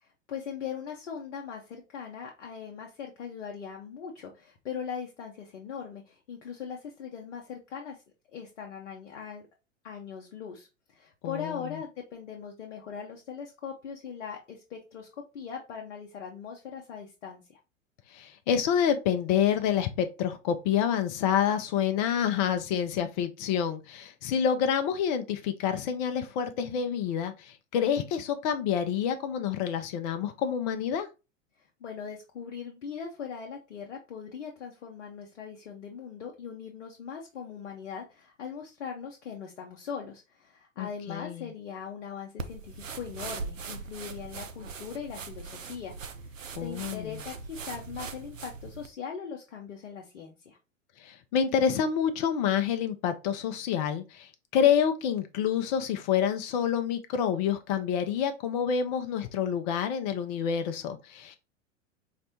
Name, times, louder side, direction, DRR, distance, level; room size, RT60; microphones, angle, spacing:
voice 1, 0.0-8.0 8.3-9.4 9.8-15.1 15.3-17.6 31.6-45.9 46.2-46.3 46.6-50.6, left 7 dB, 70° left, 0.7 m, -40 dB
voice 2, 11.2-11.7 18.1-31.1 40.8-41.5 46.6-47.2 51.0-61.4, left 8 dB, 40° left, 0.4 m, -28 dB
sound 1, 42.4-48.9, right 4 dB, 90° right, 0.5 m, -40 dB
4.1 x 2.1 x 2.7 m
figure-of-eight pair, 90°, 38 cm